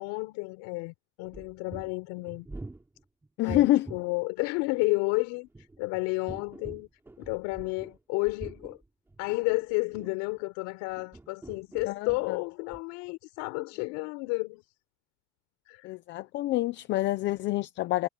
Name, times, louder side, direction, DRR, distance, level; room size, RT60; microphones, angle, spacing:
voice 1, 0.0-2.5 3.4-6.9 7.2-8.8 9.2-14.6 15.7-15.9, left 28 dB, 60° left, 6.8 m, -31 dB
sound 1, 1.2-4.1 5.3-8.0 8.2-10.4 10.9-12.4 12.7-12.8, right 2 dB, 5° right, 5.2 m, -45 dB
voice 2, 3.4-3.9 11.9-12.4 15.8-18.1, left 15 dB, 35° left, 0.7 m, -27 dB
cardioid pair, 160°, 32 cm